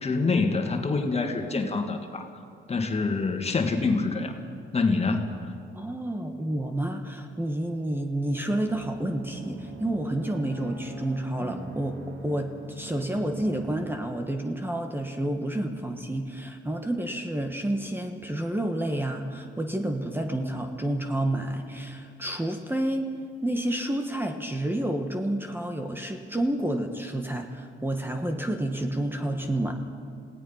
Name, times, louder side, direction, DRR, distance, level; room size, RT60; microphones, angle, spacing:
voice 1, 0.0-2.3 2.7-4.3 4.7-5.3, left 3 dB, 30° left, 5 dB, 2.1 m, -26 dB
voice 2, 5.7-12.0 12.2-23.1 23.4-29.7, right 1 dB, 10° right, 4 dB, 1.5 m, -29 dB
sound 1, 8.6-14.0, right 3 dB, 75° right, 2.5 m, -42 dB
27.5 x 17.0 x 5.8 m, 2.3 s
cardioid pair, 90°, 20 cm